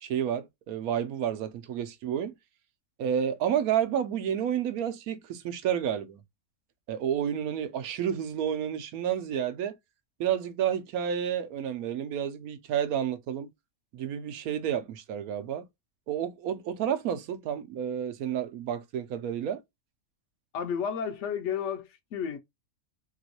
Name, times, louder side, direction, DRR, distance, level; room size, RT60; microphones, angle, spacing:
voice 1, 0.0-2.3 3.0-6.2 6.9-9.8 10.2-13.5 13.9-15.7 16.1-19.6, right 9 dB, 85° right, 1.1 m, -30 dB
voice 2, 20.5-22.4, left 7 dB, 60° left, 0.9 m, -32 dB
3.0 x 3.0 x 2.8 m
omnidirectional pair, 1.5 m